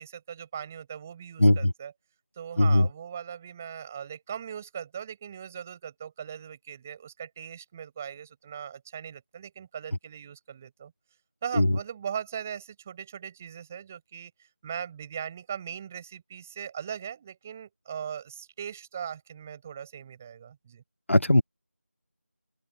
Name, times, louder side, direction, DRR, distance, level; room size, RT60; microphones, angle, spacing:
voice 1, 0.0-1.9 2.4-10.9 11.4-20.8, right 8 dB, 10° right, 6.5 m, -39 dB
voice 2, 21.1-21.4, left 1 dB, 55° left, 0.9 m, -18 dB
open air
figure-of-eight pair, 170°, 8 cm